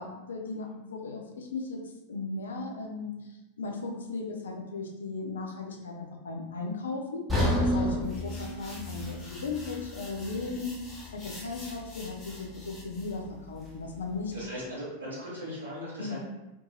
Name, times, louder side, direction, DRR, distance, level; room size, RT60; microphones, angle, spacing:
voice 1, 0.0-1.8 2.1-14.3 16.0-16.2, left 3 dB, 70° left, 1 dB, 0.4 m, -37 dB
sound 1, 7.3-11.4 11.7-11.9 12.5-12.6, left 1 dB, 5° right, 0.8 m, -31 dB
sound 2, 8.0-13.2, left 1 dB, 25° left, 0.9 m, -48 dB
voice 2, 14.3-16.2, equal, 80° right, -8 dB, 1.0 m, -38 dB
2.6 x 2.5 x 2.6 m, 0.97 s
figure-of-eight pair, 90°, 0 cm